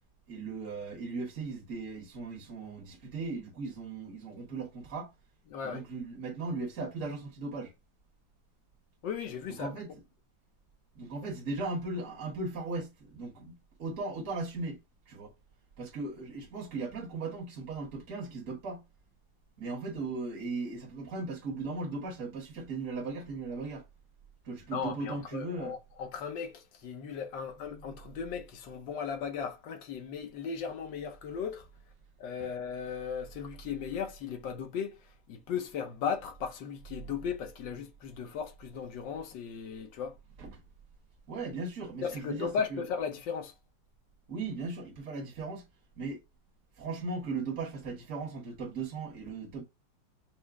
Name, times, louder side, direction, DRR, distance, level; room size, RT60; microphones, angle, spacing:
voice 1, 0.3-5.1 5.6-7.7 9.6-9.9 10.9-14.8 15.1-15.3 15.8-18.8 19.6-23.8 24.4-25.7 40.4-40.5 41.3-42.8 44.3-45.6 46.0-46.2 46.8-49.6, right 3 dB, 45° right, 1.5 m, -37 dB
voice 2, 5.5-5.8 9.0-9.8 24.7-31.7 32.2-35.0 35.3-40.2 42.0-43.5, left 7 dB, 80° left, 1.5 m, -36 dB
6.0 x 2.1 x 3.4 m
omnidirectional pair, 2.0 m